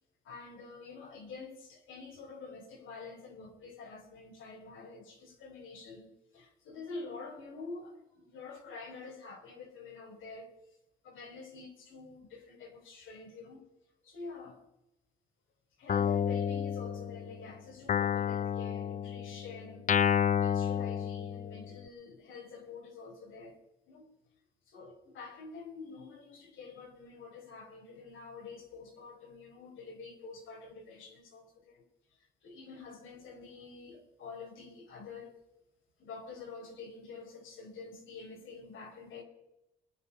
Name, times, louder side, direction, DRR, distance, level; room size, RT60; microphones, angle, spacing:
voice 1, 0.2-10.5 11.0-13.6 14.0-14.6 15.8-23.5 23.9-24.1 24.7-31.8 32.4-35.4 36.0-39.2, left 4 dB, 80° left, 4.8 m, -47 dB
Guitar, 15.9-17.4 17.9-21.8, left 8 dB, 40° left, 0.5 m, -30 dB
22.0 x 9.6 x 5.6 m
cardioid pair, 90°, 20 cm